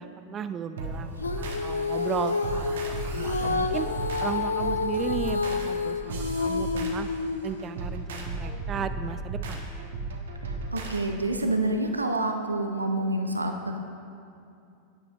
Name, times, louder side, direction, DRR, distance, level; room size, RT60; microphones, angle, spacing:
voice 1, 0.0-3.9 4.2-7.1 7.4-9.7, right 7 dB, 25° right, 11 dB, 0.3 m, -35 dB
sound 1, 0.8-11.0, right 2 dB, 60° right, 1.2 m, -35 dB
Female singing, 1.2-7.7, left 4 dB, 75° left, 0.4 m, -29 dB
voice 2, 10.5-13.8, right 2 dB, 80° right, 5 dB, 0.6 m, -28 dB
12.0 x 9.6 x 3.0 m, 2.6 s
figure-of-eight pair, 90°, 0 cm